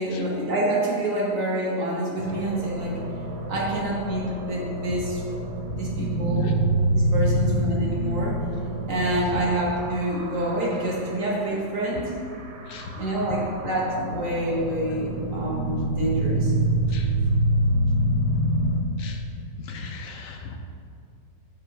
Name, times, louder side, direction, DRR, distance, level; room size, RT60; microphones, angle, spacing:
voice 1, 0.0-3.0 3.5-5.2 5.7-6.5 6.9-8.4 8.9-12.1 13.0-16.5, right 1 dB, 50° right, -3 dB, 1.5 m, -27 dB
sound 1, 2.2-11.6 11.9-18.8, right 1 dB, 65° right, 1.3 m, -26 dB
voice 2, 19.6-20.6, left 4 dB, 70° left, 4 dB, 0.8 m, -39 dB
5.7 x 5.4 x 4.6 m, 2.4 s
omnidirectional pair, 2.0 m